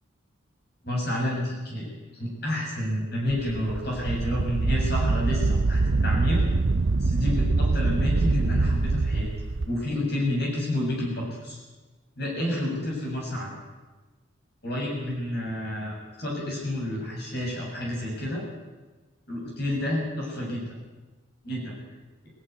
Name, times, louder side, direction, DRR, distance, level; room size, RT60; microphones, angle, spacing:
voice 1, 0.8-1.9 2.1-6.4 7.0-9.3 9.6-11.6 12.2-13.6 14.6-18.5 19.3-20.8 21.4-21.7, left 1 dB, 50° left, -2 dB, 7.2 m, -29 dB
Wind, 3.3-9.7, right 3 dB, 70° right, 0.6 m, -24 dB
19.5 x 14.0 x 9.6 m, 1.2 s
head